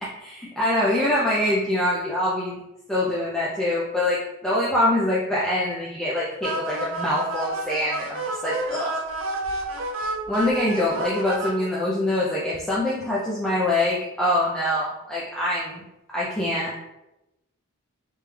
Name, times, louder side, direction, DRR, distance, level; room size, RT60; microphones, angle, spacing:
voice 1, 0.0-2.6 2.9-9.0 10.3-15.8 16.1-16.8, left 1 dB, 5° left, -8 dB, 0.5 m, -24 dB
sound 1, 6.4-11.5, right 2 dB, 65° right, 0.5 m, -30 dB
3.5 x 3.1 x 3.3 m, 0.94 s
head